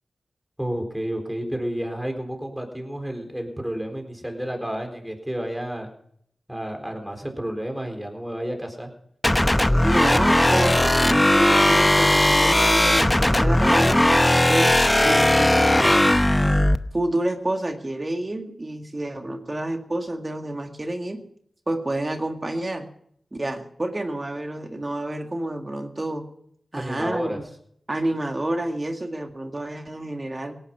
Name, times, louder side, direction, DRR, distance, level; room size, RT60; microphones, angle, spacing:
voice 1, 0.6-5.9 6.5-8.9 26.8-27.4, equal, 5° right, 3 dB, 4.1 m, -31 dB
sound 1, 9.2-16.8, left 1 dB, 20° left, 0.8 m, -18 dB
voice 2, 9.8-14.0 14.5-16.1 16.9-21.2 21.7-22.9 23.3-26.2 26.7-27.5 27.9-30.6, right 1 dB, 35° right, 4 dB, 2.0 m, -29 dB
17.5 x 10.5 x 5.9 m, 0.67 s
cardioid pair, 45°, 0 cm